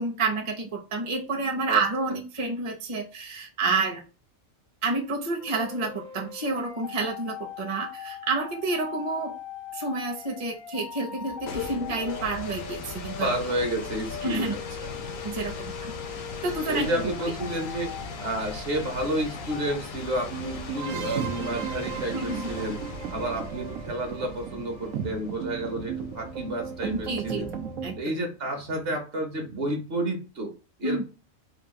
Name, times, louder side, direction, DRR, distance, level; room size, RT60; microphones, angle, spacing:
voice 1, 0.0-4.0 4.8-9.3 9.7-13.3 14.2-14.5 15.2-15.9 16.4-16.9 22.1-22.5 26.9-27.4 27.8-27.9 30.8-31.0, right 3 dB, 30° right, 0 dB, 0.8 m, -29 dB
sound 1, 5.4-19.8, left 7 dB, 50° left, 0.6 m, -41 dB
sound 2, 11.2-27.9, left 4 dB, 80° left, 1.2 m, -39 dB
voice 2, 13.2-14.9 16.7-17.9 18.2-22.8 23.1-27.5 28.0-30.5 30.8-31.1, right 1 dB, 50° right, 3 dB, 1.1 m, -30 dB
sound 3, 20.3-28.0, right 7 dB, 75° right, 1.0 m, -35 dB
3.9 x 2.4 x 3.6 m, 0.33 s
omnidirectional pair, 1.4 m